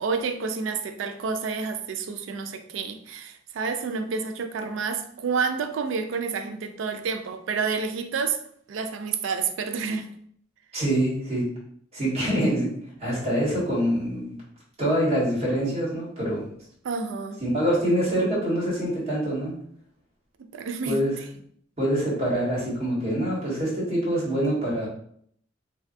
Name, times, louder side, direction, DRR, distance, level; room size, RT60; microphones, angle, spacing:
voice 1, 0.0-8.4 8.7-10.1 16.8-17.4 20.4-21.0, right 5 dB, 85° right, 0.3 m, -29 dB
voice 2, 10.7-11.4 11.9-12.7 13.0-14.4 14.8-16.5 17.4-19.5 20.8-21.1 21.8-24.9, right 1 dB, 35° right, 1.3 m, -25 dB
3.1 x 2.3 x 2.6 m
head